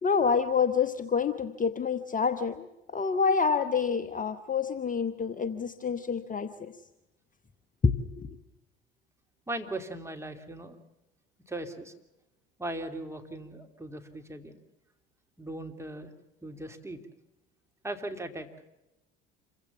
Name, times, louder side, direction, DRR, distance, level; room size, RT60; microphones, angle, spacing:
voice 1, 0.0-2.7 2.9-6.7 7.8-8.3, left 5 dB, 25° left, 11 dB, 1.2 m, -27 dB
voice 2, 9.5-10.8 11.5-11.9 12.6-14.6 15.4-16.1 16.4-17.0 17.8-18.5, right 1 dB, 10° right, 4 dB, 3.0 m, -38 dB
27.5 x 16.5 x 7.0 m, 0.94 s
hypercardioid pair, 65°, 30 cm